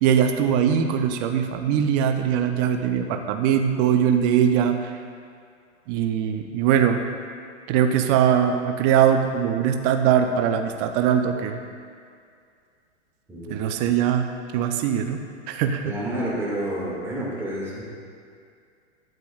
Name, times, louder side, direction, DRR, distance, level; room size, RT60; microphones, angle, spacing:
voice 1, 0.0-4.8 5.9-7.0 7.7-11.6 13.5-14.3 14.5-15.2 15.5-15.9, right 8 dB, 35° right, 5 dB, 0.6 m, -21 dB
voice 2, 13.3-13.9 15.8-17.8, right 1 dB, 5° right, -6 dB, 2.1 m, -30 dB
12.0 x 7.6 x 2.4 m, 2.2 s
hypercardioid pair, 130°, 36 cm